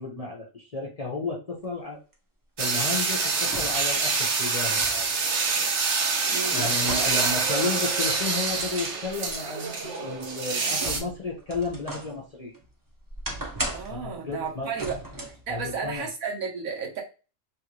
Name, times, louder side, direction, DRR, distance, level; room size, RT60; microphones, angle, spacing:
voice 1, 0.0-2.0 2.6-5.1 6.5-12.5 13.9-14.8 15.5-16.1, left 3 dB, 40° left, 0.5 m, -33 dB
sound 1, 2.1-2.2 3.4-3.9 4.4-7.5 7.9-9.4 10.0-12.1 12.5-14.0 14.7-15.4 15.9-16.0, right 1 dB, 25° right, 0.4 m, -37 dB
sound 2, 2.6-11.0, right 4 dB, 60° right, 1.0 m, -26 dB
voice 2, 6.3-6.7 13.7-15.0 15.5-17.0, right 5 dB, 90° right, 1.4 m, -33 dB
3.1 x 2.4 x 3.0 m
omnidirectional pair, 1.4 m